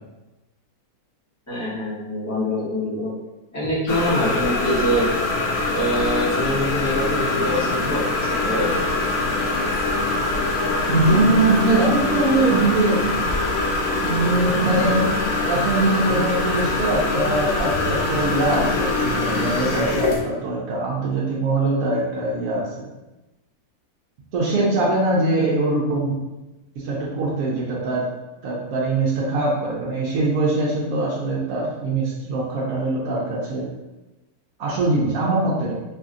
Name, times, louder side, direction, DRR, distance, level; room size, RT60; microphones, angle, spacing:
voice 1, 1.5-3.1 3.5-5.1 5.7-8.7, equal, 15° left, -9 dB, 0.8 m, -24 dB
sound 1, 3.9-20.2, left 2 dB, 75° left, 1.0 m, -23 dB
voice 2, 10.9-13.0 14.0-15.1 15.5-22.9 24.3-26.2 26.8-28.1 28.4-33.7 34.6-35.7, right 2 dB, 70° right, -5 dB, 1.0 m, -22 dB
3.3 x 2.7 x 2.4 m, 1.0 s
omnidirectional pair, 1.6 m